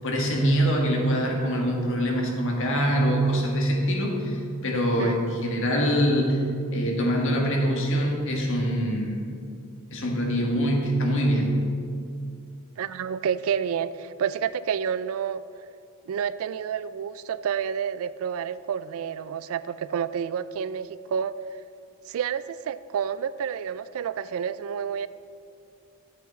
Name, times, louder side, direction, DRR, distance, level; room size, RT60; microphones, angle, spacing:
voice 1, 0.0-6.4 6.7-9.2 9.9-11.5, equal, 60° left, 0 dB, 1.5 m, -24 dB
voice 2, 12.8-15.4 16.1-21.4 22.1-25.1, right 7 dB, 65° right, 15 dB, 0.3 m, -29 dB
9.8 x 8.1 x 4.1 m, 2.5 s
head